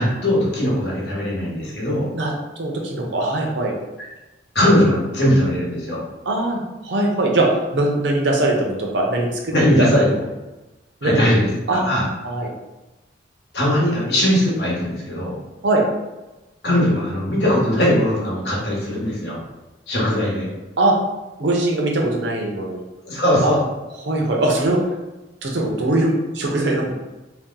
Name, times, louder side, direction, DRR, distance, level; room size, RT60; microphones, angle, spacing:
voice 1, 0.0-2.1 4.5-6.0 9.5-10.2 11.0-11.5 11.7-12.0 13.5-15.4 16.6-19.4 19.9-20.5 23.0-23.6, equal, 65° left, -4 dB, 1.0 m, -19 dB
voice 2, 2.1-3.7 6.3-9.9 11.0-11.2 11.7-11.8 12.2-12.5 15.6-15.9 20.8-21.0 21.4-22.8 23.4-23.5 24.0-24.8 25.4-26.9, right 2 dB, 75° right, 0 dB, 0.6 m, -21 dB
2.7 x 2.1 x 3.7 m, 1.1 s
head